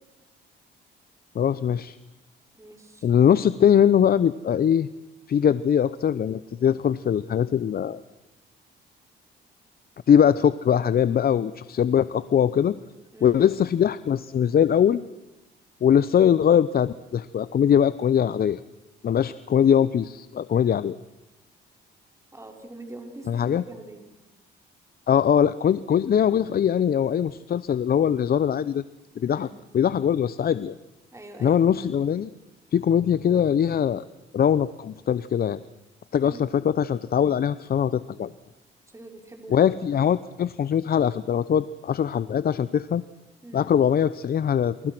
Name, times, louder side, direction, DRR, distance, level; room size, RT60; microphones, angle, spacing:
voice 1, 1.3-2.0 3.0-4.9 5.3-8.0 10.1-12.8 13.2-15.0 15.8-18.6 19.0-21.0 23.3-23.6 25.1-28.8 29.2-29.5 29.7-30.7 31.4-32.3 32.7-34.0 34.3-35.6 36.1-38.3 39.5-43.0 43.5-44.9, left 8 dB, 50° left, 16 dB, 0.8 m, -21 dB
voice 2, 2.6-3.1 13.1-13.4 22.3-24.0 29.3-29.6 31.1-31.9 36.2-36.4 38.9-39.7 43.4-43.7, right 2 dB, 15° right, 3 dB, 4.7 m, -44 dB
28.5 x 28.0 x 6.1 m, 1.0 s
cardioid pair, 90°, 20 cm